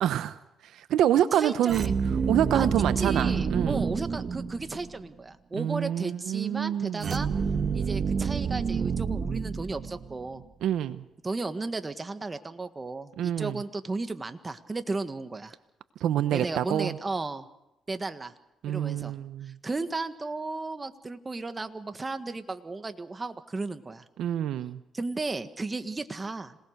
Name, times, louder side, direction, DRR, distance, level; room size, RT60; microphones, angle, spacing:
voice 1, 0.0-0.4 0.7-1.9 2.3-3.8 5.5-7.3 10.6-11.0 13.2-13.6 16.0-17.0 18.6-19.5 24.2-24.8, right 11 dB, 80° right, 12 dB, 0.9 m, -27 dB
voice 2, 1.3-1.9 2.5-7.3 7.7-10.4 11.2-15.6 16.3-17.5 17.9-18.3 18.7-19.1 19.4-24.1 24.9-26.6, right 3 dB, 25° right, 9 dB, 1.6 m, -34 dB
sound 1, 1.7-5.0 7.0-10.3, right 6 dB, 50° right, 1.6 m, -28 dB
26.5 x 19.0 x 6.6 m, 0.90 s
cardioid pair, 90°, 0 cm